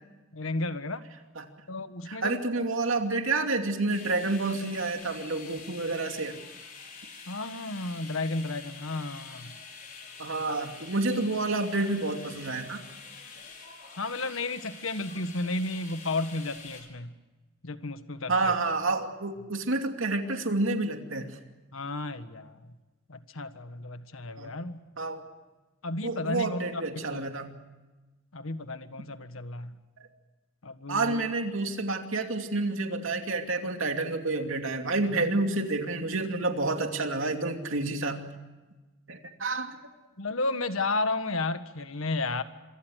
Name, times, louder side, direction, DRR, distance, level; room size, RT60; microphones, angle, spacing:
voice 1, 0.3-1.0 1.7-2.4 7.3-9.6 14.0-17.1 17.6-18.5 21.7-22.6 23.1-24.8 25.8-26.8 27.1-27.3 28.3-29.8 30.6-31.2 40.2-42.4, left 2 dB, 90° left, 10 dB, 1.6 m, -33 dB
voice 2, 2.1-6.4 10.2-12.8 18.3-21.4 24.4-24.6 25.0-25.2 26.0-27.5 30.0-30.1 30.9-38.2 39.1-39.8, right 3 dB, 75° right, 5 dB, 2.6 m, -29 dB
sound 1, 3.9-16.8, left 5 dB, 45° left, 5.4 m, -46 dB
26.0 x 24.0 x 6.5 m, 1.2 s
head